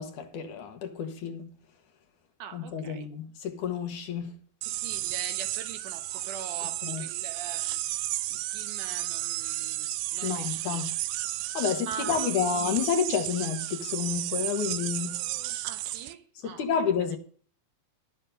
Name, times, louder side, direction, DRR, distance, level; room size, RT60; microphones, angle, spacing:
voice 1, 0.0-1.5 2.5-4.3 6.8-7.0 10.2-11.0 11.5-15.2 16.4-17.2, left 7 dB, 65° left, 2.9 m, -30 dB
voice 2, 2.4-3.1 4.7-7.8 8.3-10.6 11.8-12.5 15.6-16.7, right 8 dB, 70° right, 2.5 m, -42 dB
sound 1, 4.6-16.1, right 16 dB, 85° right, 2.5 m, -33 dB
12.0 x 9.5 x 5.3 m
omnidirectional pair, 4.0 m